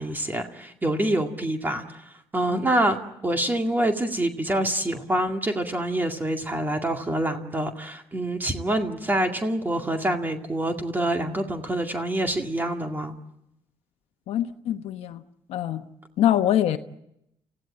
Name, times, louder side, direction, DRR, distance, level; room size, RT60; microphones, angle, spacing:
voice 1, 0.0-2.0 2.3-3.0 3.2-13.1, right 1 dB, 20° right, 2.2 m, -26 dB
voice 2, 14.3-15.2 15.5-15.8 16.2-16.8, left 11 dB, 80° left, 1.1 m, -24 dB
29.5 x 16.0 x 8.9 m
cardioid pair, 105°, 10 cm